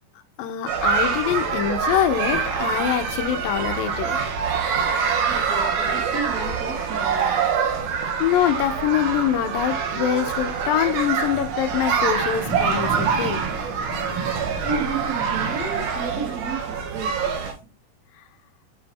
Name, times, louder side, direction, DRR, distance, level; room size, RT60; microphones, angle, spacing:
voice 1, 0.4-4.2 8.2-13.4, left 10 dB, 80° left, 2.6 m, -24 dB
sound 1, 0.7-17.5, right 6 dB, 90° right, 3.3 m, -25 dB
voice 2, 5.0-7.4 14.6-17.4, right 4 dB, 35° right, 1.8 m, -33 dB
sound 2, 8.5-15.8, right 3 dB, 55° right, 3.3 m, -37 dB
7.2 x 5.3 x 4.2 m
omnidirectional pair, 4.1 m